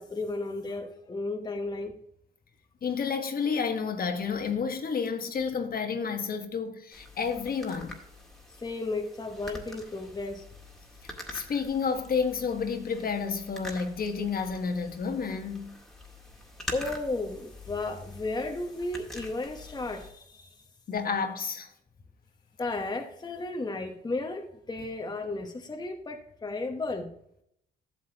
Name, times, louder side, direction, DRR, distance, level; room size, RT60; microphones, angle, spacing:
voice 1, 0.0-2.0 8.6-10.4 16.7-20.6 22.6-27.1, left 2 dB, 20° left, 1.1 m, -34 dB
voice 2, 2.8-7.9 11.3-15.8 20.9-21.7, left 5 dB, 50° left, 1.4 m, -30 dB
sound 1, 6.9-20.1, left 1 dB, ahead, 1.9 m, -45 dB
12.0 x 7.3 x 2.9 m
cardioid pair, 90°, 20 cm